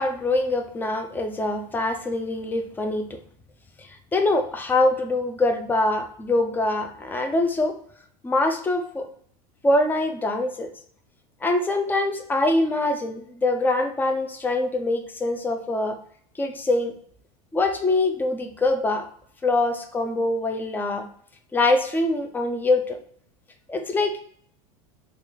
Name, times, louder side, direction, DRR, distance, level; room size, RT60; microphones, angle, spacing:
voice 1, 0.0-3.2 4.1-7.8 8.2-9.1 9.6-10.7 11.4-16.0 16.4-16.9 17.5-19.1 19.4-21.1 21.5-23.0 23.7-24.2, left 2 dB, 10° left, 5 dB, 0.4 m, -24 dB
2.9 x 2.4 x 3.8 m, 0.62 s
supercardioid pair, 115°, 19 cm